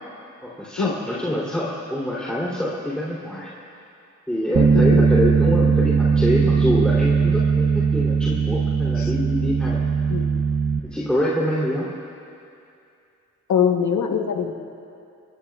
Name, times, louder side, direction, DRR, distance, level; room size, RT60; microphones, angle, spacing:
voice 1, 0.4-3.5 4.3-9.8 10.8-11.9, equal, 5° left, -7 dB, 3.0 m, -25 dB
Bass guitar, 4.5-10.8, right 5 dB, 50° right, 0.9 m, -19 dB
voice 2, 13.5-14.5, left 7 dB, 70° left, 5 dB, 1.2 m, -22 dB
24.0 x 22.0 x 2.4 m, 2.6 s
cardioid pair, 70°, 30 cm